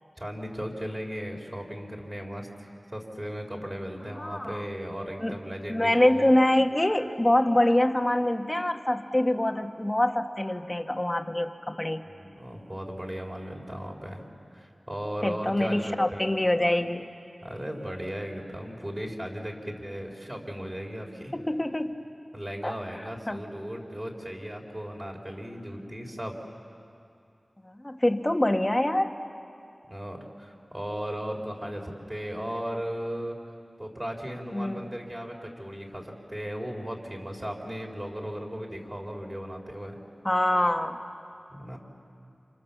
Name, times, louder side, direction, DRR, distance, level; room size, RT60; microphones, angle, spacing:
voice 1, 0.2-6.3 12.0-14.2 14.5-16.2 17.4-21.3 22.3-26.3 29.9-33.4 33.8-40.0 41.5-41.8, equal, 20° right, 0 dB, 4.2 m, -36 dB
voice 2, 4.1-4.7 5.2-5.4 5.7-12.0 15.2-17.1 21.3-21.9 22.6-23.4 27.6-29.2 34.5-34.9 40.2-41.0, left 1 dB, 20° left, 5 dB, 1.4 m, -25 dB
30.0 x 27.0 x 7.3 m, 2.5 s
wide cardioid pair, 60°, 0 cm